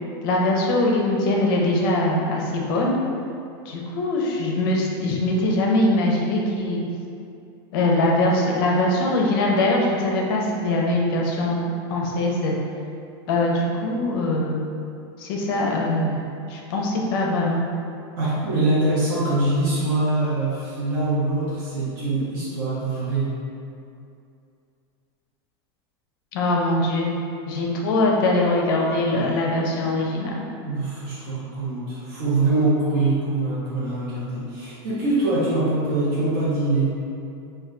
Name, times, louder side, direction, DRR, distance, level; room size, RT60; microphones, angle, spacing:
voice 1, 0.2-3.0 3.7-6.8 7.7-11.6 11.9-12.6 13.3-14.6 15.2-16.2 16.5-17.6 26.3-27.1 27.5-30.3, left 2 dB, 55° left, -1 dB, 0.5 m, -22 dB
voice 2, 18.2-23.2 30.6-36.9, right 2 dB, 55° right, -10 dB, 0.7 m, -23 dB
2.2 x 2.1 x 3.7 m, 2.5 s
supercardioid pair, 165°, 14 cm